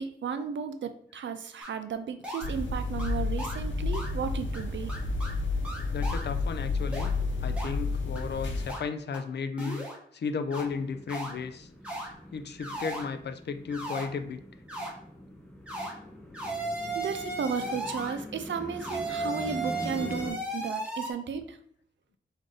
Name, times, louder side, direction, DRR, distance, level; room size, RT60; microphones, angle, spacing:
voice 1, 0.0-4.9 16.9-21.6, right 6 dB, 80° right, 9 dB, 0.5 m, -34 dB
sound 1, 1.6-1.7 2.2-2.5 3.0-3.1 3.4-3.6 3.9-4.1 4.5-4.6 4.9-5.3 5.6-6.2 6.9-7.1 7.6-7.7 8.1-8.2 8.7-8.8 9.1-9.2 9.6-10.0 10.5-10.6 11.1-11.3 11.8-12.1 12.6-13.0 13.7-14.0 14.7-14.9 15.7-15.9 16.3-18.1 18.8-21.1, right 1 dB, 5° right, 1.3 m, -35 dB
sound 2, 2.4-8.7, left 3 dB, 90° left, 0.8 m, -31 dB
voice 2, 5.9-7.1 7.4-9.9 10.1-11.7 12.3-14.4, left 5 dB, 65° left, 11 dB, 0.4 m, -34 dB
sound 3, 10.5-20.3, left 1 dB, 15° left, 1.2 m, -44 dB
4.8 x 2.6 x 3.9 m, 0.66 s
wide cardioid pair, 100°, 19 cm